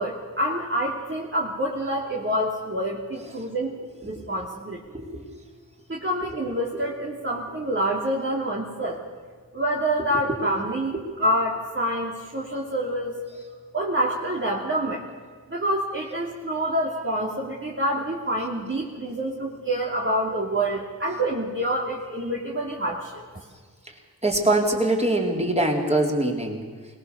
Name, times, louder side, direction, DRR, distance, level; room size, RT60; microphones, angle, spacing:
voice 1, 0.0-3.8 4.0-4.8 5.9-9.0 9.5-10.9 11.2-13.1 13.7-15.0 15.5-23.2, right 1 dB, 30° right, -3 dB, 2.9 m, -27 dB
voice 2, 4.9-5.3 6.2-6.3 6.7-6.8 10.0-10.4 10.9-11.1 23.8-26.7, right 1 dB, 15° right, 1 dB, 4.0 m, -24 dB
21.5 x 18.5 x 7.1 m, 1.5 s
cardioid pair, 50°, 38 cm